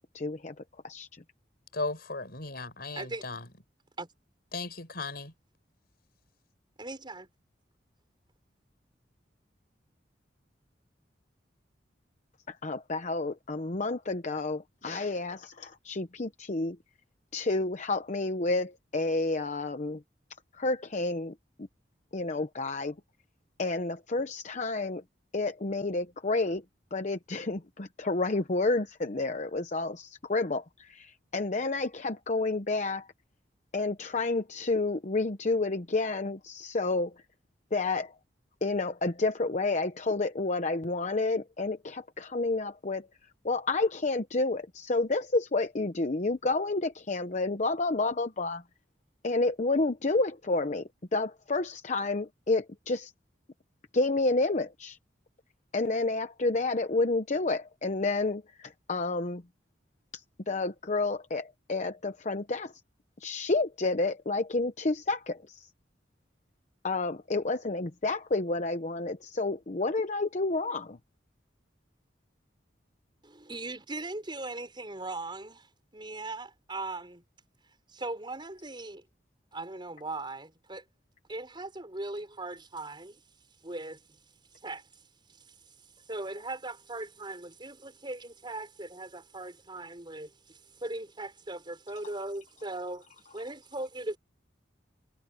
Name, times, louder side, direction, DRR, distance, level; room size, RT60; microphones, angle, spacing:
voice 1, 0.1-0.5 0.8-1.2 12.5-16.8 17.3-20.0 20.5-21.7 22.1-22.9 23.6-25.0 25.3-26.6 26.9-33.1 33.7-37.1 37.7-38.1 38.6-43.1 43.4-48.6 49.2-53.1 53.9-55.0 55.7-59.4 60.1-62.7 63.2-65.7 66.8-71.0, left 3 dB, 45° left, 0.9 m, -30 dB
voice 2, 1.7-3.5 4.5-5.3, left 3 dB, 60° left, 6.2 m, -36 dB
voice 3, 3.0-3.3 4.0-4.1 6.8-7.3 73.2-77.2 77.9-79.0 79.5-80.8 81.3-83.2 83.6-84.0 84.6-84.9 85.3-85.5 86.1-93.1 93.3-94.2, right 2 dB, 25° right, 5.6 m, -39 dB
head